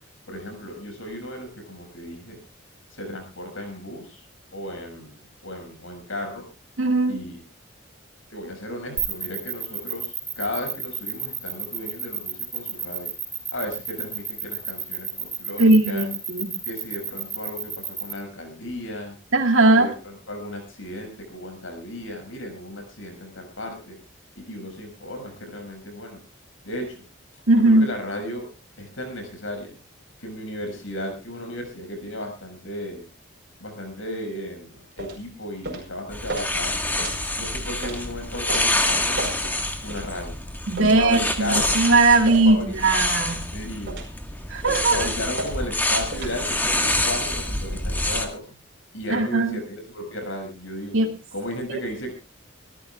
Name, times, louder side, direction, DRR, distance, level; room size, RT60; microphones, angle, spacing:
voice 1, 0.3-2.4 2.9-4.2 4.5-6.5 7.1-7.4 8.3-13.1 13.5-16.1 16.6-19.2 19.7-24.0 24.3-26.2 26.6-27.0 27.3-28.5 28.8-29.7 30.2-33.1 33.6-36.8 37.4-39.5 39.8-40.3 40.8-41.8 42.4-42.7 43.5-44.0 44.9-48.5 48.9-51.0 51.3-52.1, left 1 dB, 75° left, 4 dB, 6.8 m, -35 dB
voice 2, 6.8-7.2 15.6-16.5 19.3-19.9 27.5-27.9 40.7-43.5 44.5-45.1 49.1-49.6 50.9-51.1 51.7-51.8, right 2 dB, 80° right, 3 dB, 2.3 m, -19 dB
sound 1, 9.0-18.1, right 5 dB, 25° right, 4.1 m, -31 dB
sound 2, 35.0-35.2 35.6-35.9 36.3-36.5 37.0-37.2 37.8-38.0 38.5-38.7 39.2-39.4 39.9-40.1 40.8-41.0 41.6-41.8 42.2-42.5 43.0-43.2 43.9-44.1 44.7-44.9 45.4-45.5 46.1-46.3, right 2 dB, 55° right, 5.2 m, -32 dB
sound 3, 36.1-48.3, left 1 dB, 10° left, 1.7 m, -27 dB
26.0 x 14.5 x 2.4 m, 0.30 s
head